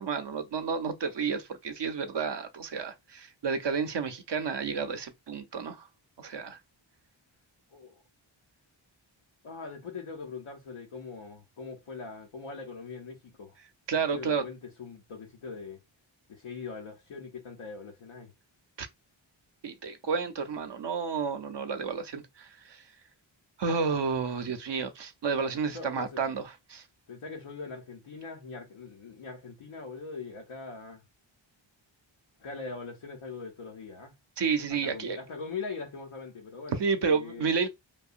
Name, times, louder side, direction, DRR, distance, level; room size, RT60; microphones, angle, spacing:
voice 1, 0.0-5.9 6.2-6.6 13.9-14.4 18.8-18.9 19.6-22.8 23.6-26.8 34.4-35.2 36.7-37.7, right 5 dB, 60° right, 0.7 m, -31 dB
voice 2, 9.4-13.6 14.1-15.8 16.3-18.3 25.7-26.2 27.1-31.0 32.4-34.1 34.7-37.5, left 4 dB, 85° left, 0.7 m, -41 dB
2.7 x 2.1 x 2.5 m
cardioid pair, 45°, 48 cm